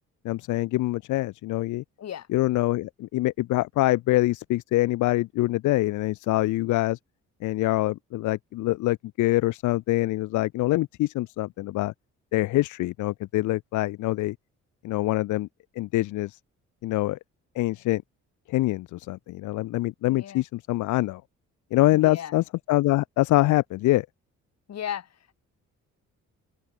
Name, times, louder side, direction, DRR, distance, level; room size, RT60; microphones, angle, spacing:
voice 1, 0.2-1.8 2.3-7.0 7.4-11.9 12.3-14.4 14.8-15.5 15.8-16.4 16.8-17.2 17.6-18.0 18.5-21.2 21.7-24.1, left 17 dB, 75° left, 0.6 m, -25 dB
voice 2, 20.1-20.4 21.9-22.3 24.7-25.1, left 9 dB, 60° left, 2.7 m, -35 dB
cardioid pair, 90°, 30 cm